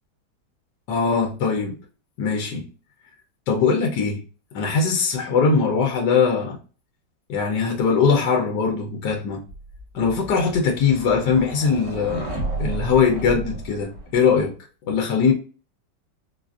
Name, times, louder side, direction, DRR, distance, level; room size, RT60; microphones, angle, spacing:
voice 1, 0.9-1.8 2.2-2.6 3.5-4.2 4.5-6.6 7.3-9.4 9.9-14.5 14.8-15.3, left 5 dB, 80° left, 1.4 m, -21 dB
sound 1, 9.5-14.4, right 2 dB, 80° right, 1.6 m, -33 dB
4.6 x 2.5 x 2.4 m
omnidirectional pair, 1.9 m